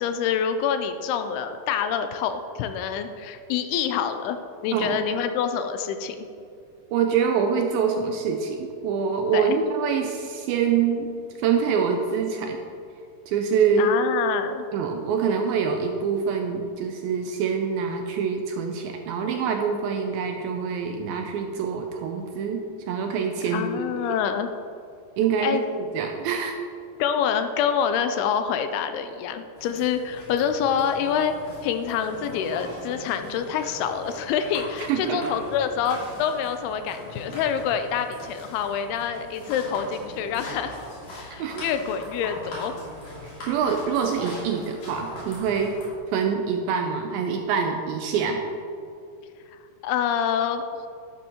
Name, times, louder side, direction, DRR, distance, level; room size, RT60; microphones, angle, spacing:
voice 1, 0.0-4.4 4.6-6.3 9.3-9.6 13.8-14.7 23.5-24.5 25.4-25.6 27.0-31.3 31.6-40.8 41.1-42.7 49.5-50.9, left 8 dB, 80° left, 8 dB, 2.5 m, -26 dB
voice 2, 6.9-11.1 11.4-12.6 13.3-13.9 14.7-23.7 25.2-26.6 34.9-35.2 41.2-41.7 43.5-45.8 46.1-48.4, right 6 dB, 85° right, 4 dB, 2.2 m, -25 dB
sound 1, 29.6-45.9, left 1 dB, 50° left, 3.7 m, -40 dB
11.5 x 10.5 x 2.9 m, 2.5 s
omnidirectional pair, 4.7 m